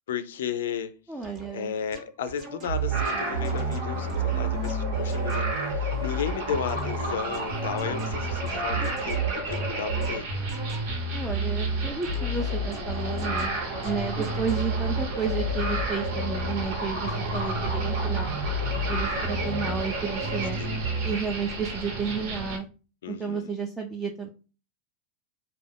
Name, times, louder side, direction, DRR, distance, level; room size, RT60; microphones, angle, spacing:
voice 1, 0.1-0.9 1.5-10.3 17.3-17.7 20.6-20.8 23.0-23.5, left 7 dB, 90° left, 0.4 m, -34 dB
voice 2, 1.1-1.7 11.1-13.5 13.8-18.3 18.9-20.6 21.0-22.7 23.1-24.3, right 5 dB, 10° right, 0.3 m, -32 dB
sound 1, 1.2-1.5 1.9-5.6 6.7-11.1 12.0-12.5 12.7-14.5, right 1 dB, 30° right, 0.7 m, -43 dB
sound 2, 2.7-13.5 13.8-16.6 17.0-21.1, right 1 dB, 80° right, 1.0 m, -30 dB
sound 3, 2.9-22.6, right 2 dB, 55° right, 0.9 m, -33 dB
2.4 x 2.2 x 3.3 m
supercardioid pair, 150°, 0 cm